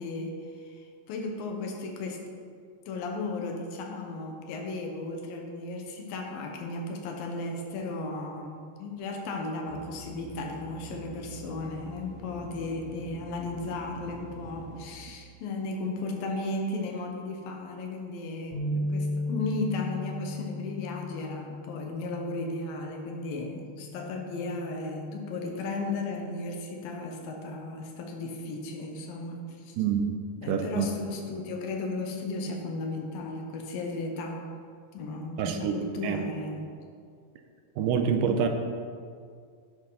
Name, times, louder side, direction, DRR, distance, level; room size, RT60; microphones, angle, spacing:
voice 1, 0.0-2.3 2.9-29.8 30.4-34.5 34.9-36.7, left 2 dB, 85° left, 2 dB, 3.0 m, -35 dB
sound 1, 9.7-14.9, right 1 dB, 50° right, 2.0 m, -45 dB
sound 2, 18.5-24.8, left 2 dB, 5° left, 2.8 m, -36 dB
voice 2, 29.8-30.1 30.5-30.9 35.4-36.2 37.8-38.5, right 7 dB, 80° right, 5 dB, 2.3 m, -26 dB
11.0 x 10.5 x 4.0 m, 2.1 s
omnidirectional pair, 4.0 m